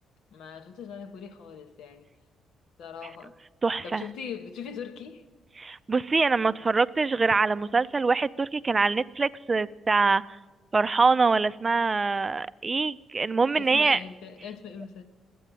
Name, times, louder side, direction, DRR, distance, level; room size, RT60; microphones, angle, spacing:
voice 1, 0.3-2.1 2.8-3.4 3.8-5.2 13.6-15.1, left 7 dB, 80° left, 1.0 m, -40 dB
voice 2, 3.6-4.0 5.6-10.2 10.7-14.0, right 4 dB, 30° right, 0.4 m, -24 dB
13.0 x 8.5 x 9.1 m
cardioid pair, 90°, 0 cm